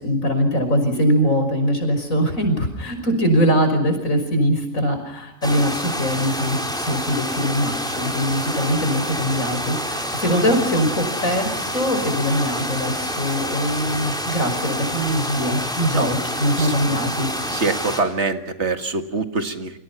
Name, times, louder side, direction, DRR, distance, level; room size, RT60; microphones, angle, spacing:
voice 1, 0.0-17.3, equal, 85° left, 7 dB, 6.3 m, -22 dB
sound 1, 5.4-18.0, equal, 5° left, 4.3 m, -27 dB
voice 2, 17.5-19.8, right 3 dB, 55° right, 7 dB, 2.1 m, -24 dB
29.0 x 25.5 x 5.8 m, 0.79 s
omnidirectional pair, 1.4 m